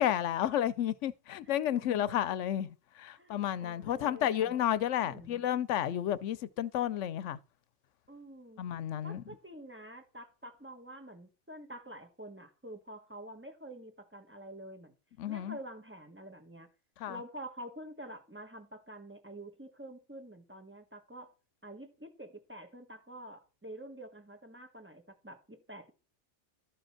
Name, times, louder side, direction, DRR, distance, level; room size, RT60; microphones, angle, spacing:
voice 1, 0.0-7.4 8.6-9.2 15.2-15.6 17.0-17.2, left 11 dB, 85° left, 1.0 m, -31 dB
voice 2, 1.4-2.2 3.1-4.6 5.0-5.4 8.1-8.6 9.0-14.9 15.3-16.7 17.1-21.3 21.6-25.9, right 1 dB, 10° right, 1.4 m, -48 dB
12.5 x 5.3 x 5.7 m
omnidirectional pair, 1.2 m